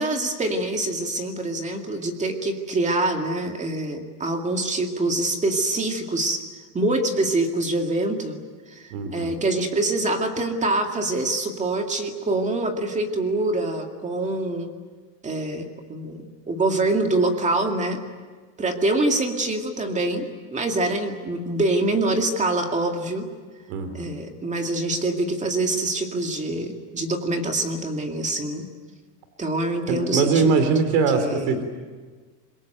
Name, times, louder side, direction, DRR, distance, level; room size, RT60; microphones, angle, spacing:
voice 1, 0.0-6.4 6.7-8.4 8.7-14.7 15.2-18.0 18.6-23.3 23.9-28.7 29.4-30.7 31.1-31.5, right 2 dB, 15° right, 4 dB, 2.2 m, -25 dB
voice 2, 8.9-9.4 23.7-24.1 29.9-31.6, right 5 dB, 70° right, 8 dB, 3.5 m, -22 dB
26.0 x 22.0 x 9.1 m, 1.4 s
cardioid pair, 160°, 50 cm